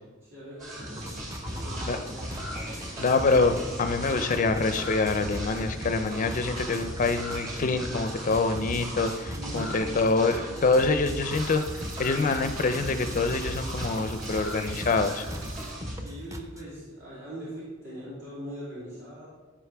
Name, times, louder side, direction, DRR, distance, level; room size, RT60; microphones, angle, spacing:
voice 1, 0.2-2.4 9.4-9.7 15.9-19.3, equal, 65° right, -10 dB, 3.0 m, -41 dB
sound 1, 0.6-15.9, equal, 40° right, 2.9 m, -37 dB
sound 2, 1.0-16.6, equal, 15° right, 0.7 m, -41 dB
voice 2, 3.0-15.2, left 3 dB, 40° left, 8 dB, 0.5 m, -26 dB
sound 3, 11.3-15.7, right 3 dB, 80° right, 1.0 m, -46 dB
14.5 x 5.1 x 3.4 m, 1.3 s
head